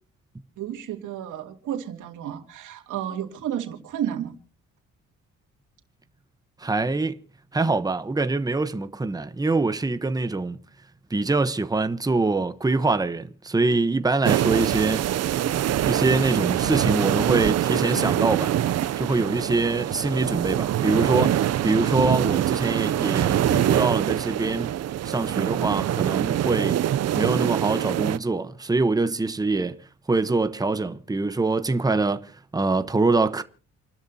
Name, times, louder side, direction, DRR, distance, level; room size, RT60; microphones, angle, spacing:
voice 1, 0.6-4.3, right 10 dB, 80° right, 2.7 m, -32 dB
voice 2, 6.6-7.2 7.5-10.6 11.1-15.0 15.8-18.5 19.0-24.7 25.0-26.8 27.1-33.4, right 3 dB, 10° right, 1.0 m, -24 dB
sound 1, 14.2-28.2, right 11 dB, 55° right, 0.6 m, -24 dB
29.0 x 12.5 x 2.8 m
cardioid pair, 90°, 30 cm